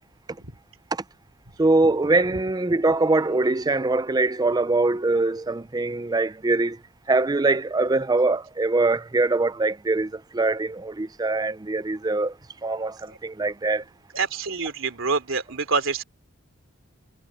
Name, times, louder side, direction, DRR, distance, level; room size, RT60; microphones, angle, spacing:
voice 1, 1.6-6.8 7.1-12.3 12.6-13.8, right 2 dB, 20° right, 0.5 m, -23 dB
voice 2, 14.1-16.0, right 4 dB, 65° right, 3.3 m, -26 dB
head